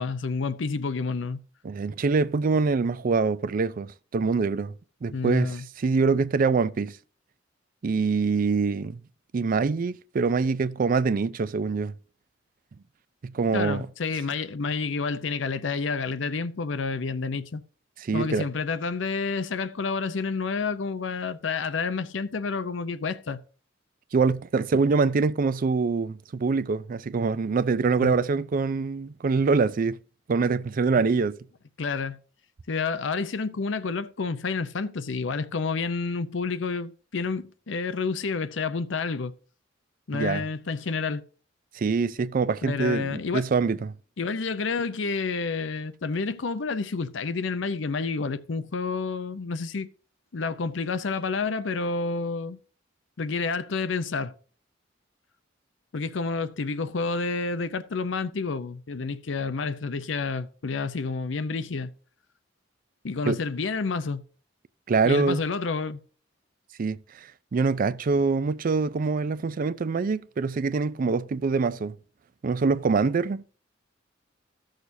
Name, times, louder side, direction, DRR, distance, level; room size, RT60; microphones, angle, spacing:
voice 1, 0.0-1.4 5.1-5.7 13.5-17.6 18.1-23.4 28.0-28.2 31.8-32.2 32.7-39.3 40.1-41.2 42.6-43.5 44.2-49.9 50.3-52.6 53.2-54.3 55.9-61.9 63.0-64.2 65.0-66.0, left 4 dB, 70° left, 0.6 m, -29 dB
voice 2, 1.6-4.7 5.0-7.0 7.8-9.0 9.3-11.9 13.2-13.9 18.0-18.5 24.1-30.0 30.3-31.4 40.1-40.4 41.7-43.9 63.2-63.4 64.9-65.4 66.8-71.9 72.4-73.4, right 4 dB, 45° right, 0.4 m, -24 dB
15.0 x 6.5 x 2.7 m
head